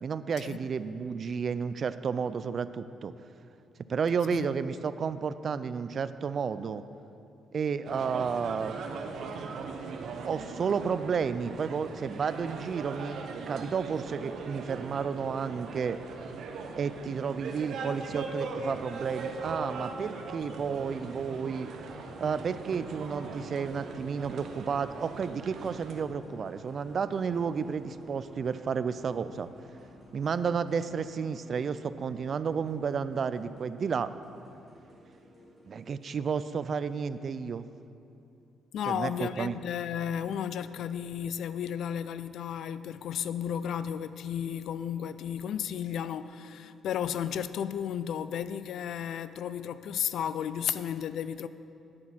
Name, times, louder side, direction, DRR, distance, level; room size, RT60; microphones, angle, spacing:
voice 1, 0.0-3.1 3.9-6.8 7.5-8.8 10.2-16.0 16.8-21.7 22.2-29.5 30.1-34.1 35.7-37.7 38.9-39.6, right 6 dB, 50° right, 0.4 m, -32 dB
sound 1, 7.8-26.0, right 4 dB, 70° right, 0.8 m, -40 dB
sound 2, 20.5-37.8, equal, 30° left, 2.6 m, -53 dB
voice 2, 38.7-51.5, left 9 dB, 75° left, 0.3 m, -33 dB
9.8 x 6.1 x 7.3 m
cardioid pair, 90°, 0 cm